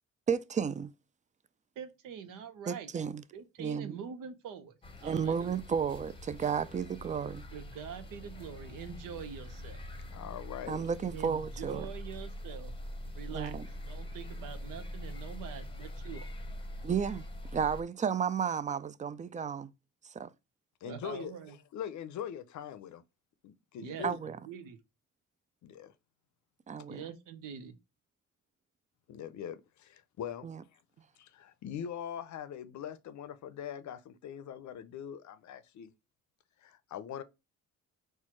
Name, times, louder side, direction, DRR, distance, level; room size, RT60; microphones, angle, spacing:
voice 1, 0.3-0.9 2.7-3.2 3.6-4.0 5.0-7.4 10.7-11.9 13.3-13.7 16.8-17.2 17.5-19.7 20.0-20.3 24.0-24.4 26.7-27.0 30.4-30.6, right 7 dB, 25° right, 0.3 m, -33 dB
voice 2, 1.8-2.9 3.3-5.6 7.5-9.8 11.1-12.7 13.1-13.6 13.9-16.2 20.8-21.6 23.8-24.8 26.9-27.8, right 7 dB, 85° right, 0.8 m, -44 dB
sound 1, 4.8-17.8, left 1 dB, 15° left, 0.8 m, -44 dB
voice 3, 10.1-10.9 20.8-21.3 21.7-23.0 23.4-24.2 25.6-25.9 29.1-30.8 31.2-35.9 36.6-37.2, left 9 dB, 65° left, 0.6 m, -42 dB
4.4 x 2.3 x 4.4 m
cardioid pair, 80°, 32 cm